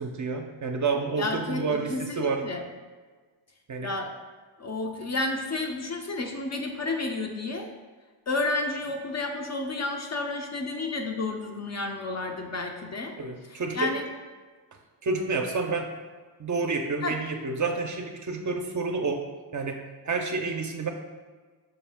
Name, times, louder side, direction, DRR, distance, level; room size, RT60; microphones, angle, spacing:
voice 1, 0.0-2.4 3.7-3.9 13.2-13.9 15.0-15.9 16.4-19.2 19.5-20.9, right 4 dB, 40° right, 4 dB, 0.5 m, -29 dB
voice 2, 1.2-2.6 3.8-4.1 4.6-7.7 8.3-13.1 13.5-14.1 17.0-17.2, left 2 dB, 35° left, 3 dB, 0.4 m, -31 dB
5.7 x 2.4 x 3.4 m, 1.4 s
cardioid pair, 65°, 49 cm